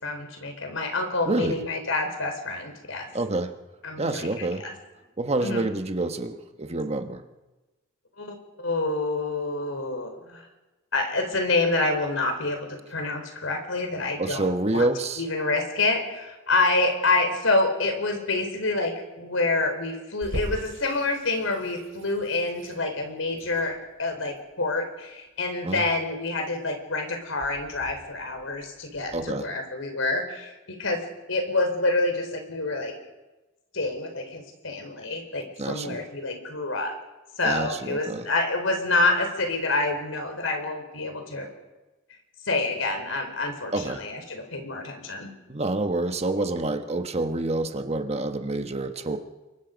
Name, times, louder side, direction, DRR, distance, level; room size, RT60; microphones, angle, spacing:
voice 1, 0.0-3.1 3.8-4.7 5.4-5.7 8.2-10.4 10.9-14.8 15.2-31.0 31.3-33.0 33.7-36.9 37.4-41.5 42.5-45.3, left 2 dB, 80° left, 5 dB, 4.5 m, -27 dB
voice 2, 1.3-1.6 3.1-3.5 4.0-4.6 5.2-7.2 14.2-15.2 25.6-25.8 29.1-29.5 35.6-36.0 37.4-38.3 43.7-44.0 45.5-49.2, right 2 dB, 30° right, 7 dB, 1.4 m, -27 dB
Water tap faucet / Sink (filling or washing), 20.2-29.2, equal, 80° right, 6.3 m, -41 dB
28.5 x 23.0 x 5.3 m, 1.1 s
head